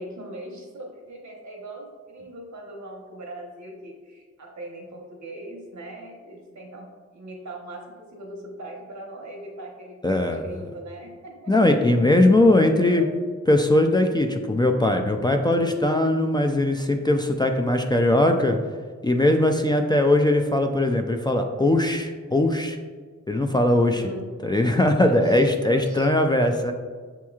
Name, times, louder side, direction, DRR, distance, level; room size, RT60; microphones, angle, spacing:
voice 1, 0.0-11.5 12.7-13.3 23.8-24.3 25.0-26.1, right 1 dB, 75° right, -1 dB, 1.0 m, -40 dB
voice 2, 10.0-10.5 11.5-13.0 13.5-18.6 19.0-22.8 23.3-24.0 24.4-26.7, left 1 dB, 15° left, 4 dB, 0.3 m, -20 dB
6.3 x 3.0 x 2.3 m, 1.5 s
cardioid pair, 65°, 29 cm